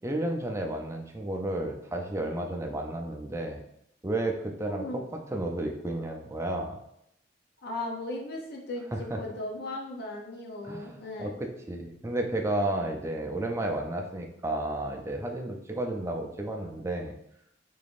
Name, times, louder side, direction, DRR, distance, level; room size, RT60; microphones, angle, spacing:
voice 1, 0.0-3.6 4.0-5.0 5.3-6.8 8.9-9.2 10.6-17.1, right 1 dB, 15° right, 2 dB, 0.4 m, -32 dB
voice 2, 4.6-5.0 7.6-11.3, left 1 dB, 60° left, 0 dB, 0.7 m, -37 dB
3.6 x 3.4 x 2.5 m, 0.77 s
head